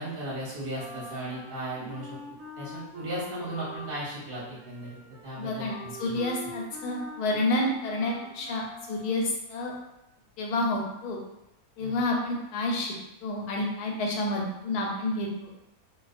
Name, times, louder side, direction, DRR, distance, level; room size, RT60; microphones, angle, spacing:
voice 1, 0.0-2.2 2.6-6.2 11.8-12.0, right 1 dB, 50° right, -7 dB, 0.7 m, -36 dB
Wind instrument woodwind instrument, 0.7-9.3, left 1 dB, 85° right, 1.1 m, -44 dB
voice 2, 5.4-8.6 8.9-9.7 10.4-11.2 11.8-12.9 13.2-15.5, left 2 dB, 90° left, 0 dB, 1.1 m, -29 dB
2.6 x 2.0 x 2.4 m, 0.88 s
omnidirectional pair, 1.6 m